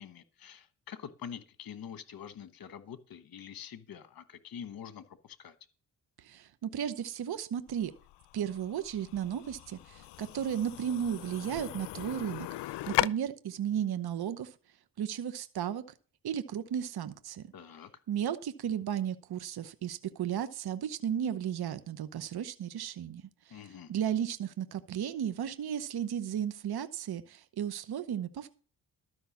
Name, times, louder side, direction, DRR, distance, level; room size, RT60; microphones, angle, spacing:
voice 1, 0.0-5.5 17.5-17.9 23.5-23.9, left 8 dB, 55° left, 1.1 m, -46 dB
voice 2, 6.2-7.9 8.3-14.5 15.0-15.8 16.2-17.5 18.1-28.5, right 9 dB, 65° right, 0.9 m, -34 dB
sound 1, 7.7-13.1, left 16 dB, 80° left, 0.5 m, -37 dB
13.0 x 5.6 x 7.1 m
cardioid pair, 85°, 41 cm